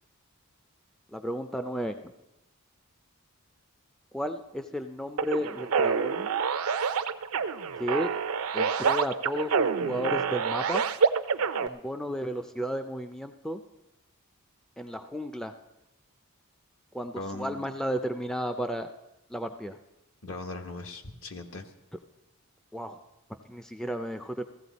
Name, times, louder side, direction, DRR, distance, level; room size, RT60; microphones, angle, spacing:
voice 1, 1.1-2.1 4.1-6.3 7.8-8.1 8.5-10.8 11.6-13.6 14.8-15.5 16.9-18.9 19.3-19.8 22.7-23.0 23.3-24.4, equal, 5° left, 7 dB, 0.4 m, -33 dB
sound 1, 5.2-11.7, right 6 dB, 80° right, 0.5 m, -27 dB
voice 2, 17.1-17.7 20.2-21.7, left 2 dB, 65° left, 6 dB, 1.2 m, -39 dB
15.5 x 14.5 x 4.1 m, 0.95 s
head